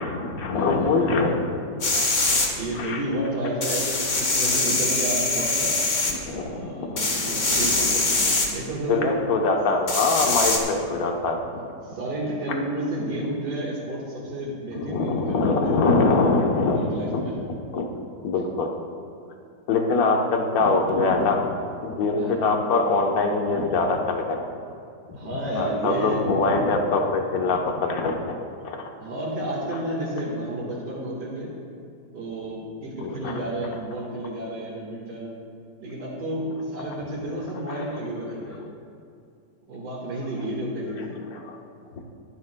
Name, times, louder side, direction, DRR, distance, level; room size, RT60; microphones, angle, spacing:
voice 1, 0.0-1.3 2.8-3.0 6.1-7.6 8.9-11.4 14.7-17.2 17.7-17.8 18.2-18.7 19.7-21.5 21.8-24.4 25.1-28.4 28.6-28.8 33.0-33.3 37.7-37.9 41.3-41.6 42.0-42.1, left 3 dB, 60° left, 2 dB, 1.4 m, -23 dB
sound 1, 1.8-2.5 3.6-6.1 7.0-8.5 9.9-10.6, left 2 dB, 40° left, 1.5 m, -23 dB
voice 2, 2.6-3.9 4.1-5.8 6.3-9.1 11.5-15.8 16.7-17.4 22.2-22.4 25.2-26.2 29.0-31.5 32.1-35.4 35.8-38.6 39.7-41.2, right 1 dB, 70° right, -5 dB, 2.3 m, -31 dB
23.0 x 9.7 x 2.2 m, 2.4 s
omnidirectional pair, 1.9 m